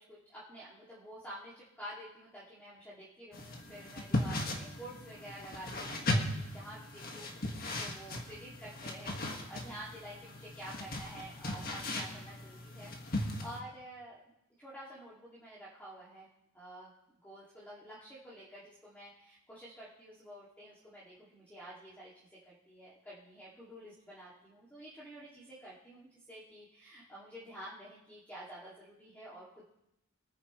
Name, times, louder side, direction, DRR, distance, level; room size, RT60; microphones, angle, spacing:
voice 1, 0.1-12.9 13.2-14.2 14.6-16.3 16.5-16.9 17.2-29.7, right 1 dB, 10° left, -9 dB, 2.3 m, -50 dB
sound 1, 3.3-13.6, left 1 dB, 45° left, 1.6 m, -38 dB
24.0 x 9.5 x 3.1 m, 0.85 s
head